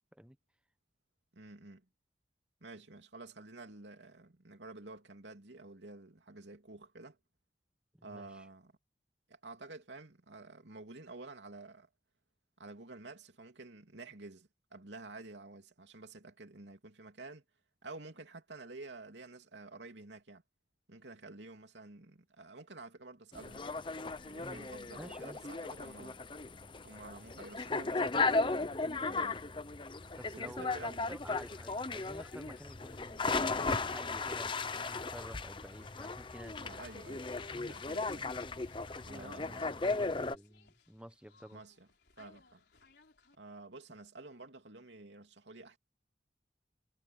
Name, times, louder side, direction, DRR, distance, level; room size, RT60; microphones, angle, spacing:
voice 1, 1.3-1.8 2.6-7.2 8.0-8.7 9.3-11.9 12.6-17.4 17.8-20.4 20.9-23.7 24.2-26.2 26.8-29.5 30.3-31.1 36.6-37.3 37.6-38.3 39.0-39.9 41.5-41.9 42.2-42.6 43.4-45.8, right 2 dB, 80° right, 3.0 m, -50 dB
voice 2, 7.9-8.5 24.4-24.7 24.9-25.4 30.2-36.7 39.1-41.6, equal, 5° right, 0.9 m, -51 dB
sound 1, 23.3-40.4, left 3 dB, 30° left, 0.8 m, -36 dB
sound 2, 31.1-43.3, left 3 dB, 70° left, 3.8 m, -62 dB
head